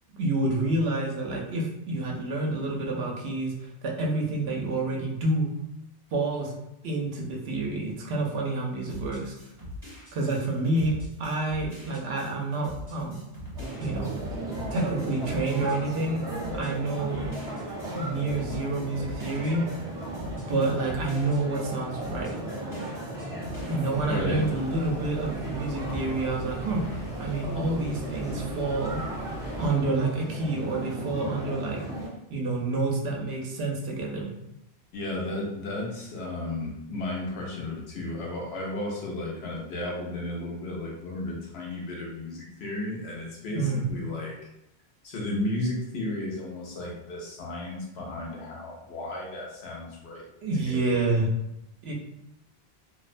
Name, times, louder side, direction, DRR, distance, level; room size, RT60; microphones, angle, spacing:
voice 1, 0.1-5.5 6.1-6.5 6.8-9.3 10.1-13.2 13.8-14.1 14.7-16.2 16.5-17.3 17.9-19.6 20.5-22.3 23.7-26.8 27.2-29.0 29.6-31.8 32.3-34.3 43.5-43.8 50.4-51.3 51.8-51.9, right 2 dB, 75° right, -1 dB, 0.8 m, -28 dB
sound 1, 8.9-21.7 22.0-23.9, left 1 dB, 30° right, 1.3 m, -42 dB
sound 2, 13.5-32.1, right 1 dB, 5° right, 0.4 m, -36 dB
sound 3, 23.9-29.8, left 1 dB, 15° left, 0.8 m, -41 dB
voice 2, 24.1-24.5 34.9-44.4 45.0-50.3 50.7-50.9, left 2 dB, 75° left, -2 dB, 0.9 m, -34 dB
2.5 x 2.1 x 2.4 m, 0.83 s
omnidirectional pair, 1.1 m